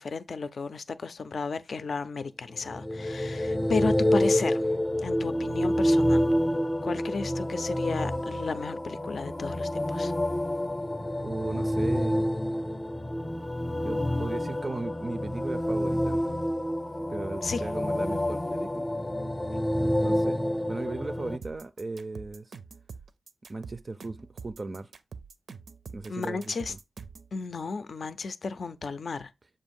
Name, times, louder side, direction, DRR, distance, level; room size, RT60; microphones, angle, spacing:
voice 1, 0.0-4.6 5.0-6.2 6.8-10.1 17.4-17.6 26.1-26.7 27.3-29.3, left 4 dB, 65° left, 0.5 m, -33 dB
sound 1, 2.6-21.4, equal, 25° left, 0.6 m, -28 dB
voice 2, 11.2-12.3 13.8-16.4 17.1-19.0 20.0-22.5 23.5-24.9 25.9-26.8, right 3 dB, 35° right, 0.4 m, -37 dB
sound 2, 21.4-27.3, right 5 dB, 80° right, 0.5 m, -45 dB
7.0 x 2.6 x 5.2 m
wide cardioid pair, 105°, 0 cm